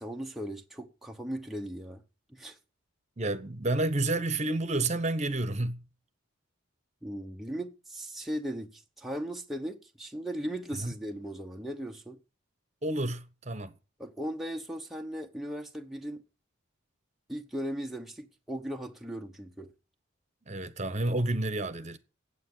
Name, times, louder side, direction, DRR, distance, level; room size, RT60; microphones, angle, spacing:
voice 1, 0.0-2.0 2.3-2.6 7.0-12.2 14.0-16.2 17.3-19.7, equal, ahead, 0.9 m, -37 dB
voice 2, 3.2-5.9 10.7-10.9 12.8-13.7 20.5-22.0, right 2 dB, 35° right, 1.0 m, -30 dB
9.1 x 8.2 x 9.5 m
head